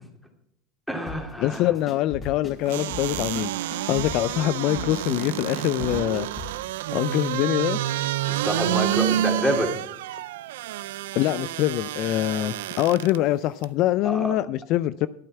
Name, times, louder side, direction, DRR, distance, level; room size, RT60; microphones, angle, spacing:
voice 1, 0.9-1.7 8.3-9.8 14.0-14.3, equal, 5° left, 2.7 m, -27 dB
sound 1, 1.1-6.6, left 2 dB, 25° left, 2.9 m, -39 dB
voice 2, 1.4-6.3 6.9-7.8 11.2-15.1, left 14 dB, 55° left, 0.4 m, -24 dB
sound 2, 2.7-13.2 13.6-13.7, right 13 dB, 85° right, 0.4 m, -29 dB
12.0 x 8.8 x 5.8 m
supercardioid pair, 110°, 0 cm